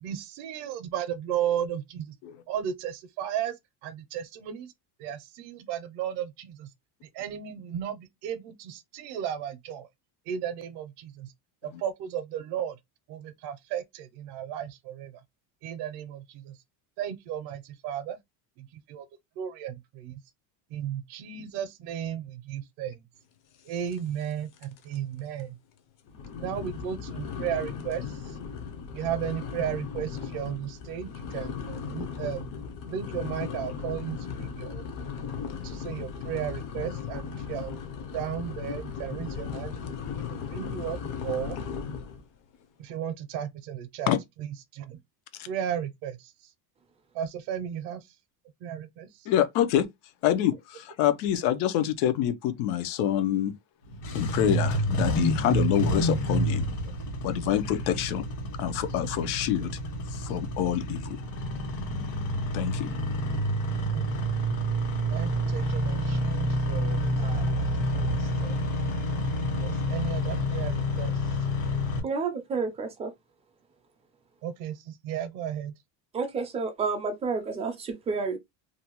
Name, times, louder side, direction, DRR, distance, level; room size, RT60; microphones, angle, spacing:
voice 1, 0.0-2.1 2.5-3.5 3.8-4.7 5.0-6.7 7.1-9.9 10.3-11.3 11.6-12.7 13.1-15.1 15.6-16.5 17.0-18.2 18.6-19.0 19.4-20.1 20.7-23.0 23.7-25.6 26.4-28.1 28.9-32.5 32.9-34.8 35.6-37.8 38.1-39.8 40.5-41.0 41.2-41.6 42.8-44.2 44.7-45.0 45.5-46.3 47.1-48.0 48.6-49.1 63.9-64.0 65.1-67.7 67.9-68.6 69.6-71.2 74.4-75.7, right 9 dB, 65° right, 0.6 m, -34 dB
sound 1, 23.9-24.3 24.6-25.0 25.4-25.5 26.1-42.2, left 6 dB, 45° left, 0.6 m, -37 dB
voice 2, 49.3-49.9 50.2-53.5 54.1-56.7 57.2-58.2 58.6-59.7 60.1-61.2 62.5-62.9, left 11 dB, 85° left, 0.7 m, -26 dB
Engine starting, 53.9-72.0, equal, 65° left, 1.5 m, -28 dB
voice 3, 72.0-73.1 76.1-78.4, right 4 dB, 15° right, 0.3 m, -30 dB
2.6 x 2.2 x 2.9 m
cardioid pair, 160°, 45 cm